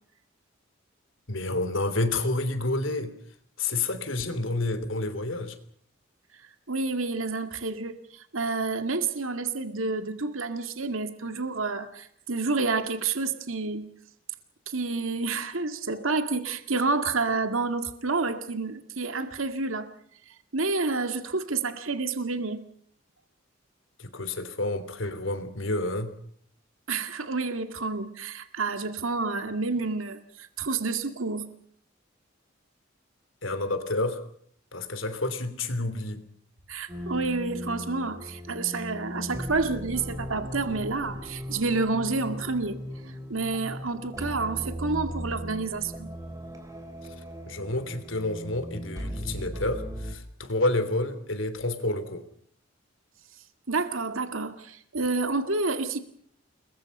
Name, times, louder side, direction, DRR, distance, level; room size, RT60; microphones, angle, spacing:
voice 1, 1.3-3.1 3.6-5.6 24.0-26.1 33.4-34.2 34.7-36.2 47.5-52.2, left 2 dB, 75° left, 11 dB, 3.2 m, -29 dB
voice 2, 6.7-13.9 14.7-19.9 20.5-22.6 26.9-31.5 36.7-42.8 43.3-46.1 53.7-56.0, right 3 dB, 90° right, 8 dB, 2.1 m, -29 dB
sound 1, 36.9-50.1, equal, 15° right, 3.2 m, -38 dB
29.5 x 21.5 x 5.5 m, 0.62 s
head